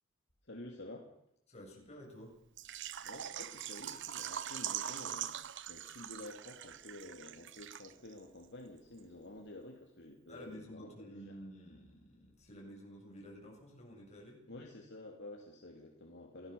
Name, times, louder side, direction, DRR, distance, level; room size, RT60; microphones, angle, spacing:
voice 1, 0.4-1.1 3.0-11.3 14.5-16.5, left 1 dB, 55° left, 1 dB, 3.0 m, -50 dB
voice 2, 1.5-2.3 10.3-14.4, equal, 30° left, -1 dB, 7.9 m, -51 dB
Water / Liquid, 2.6-8.2 8.4-8.5 9.0-9.1, right 10 dB, 60° right, 0.9 m, -42 dB
27.5 x 17.5 x 7.1 m, 0.79 s
head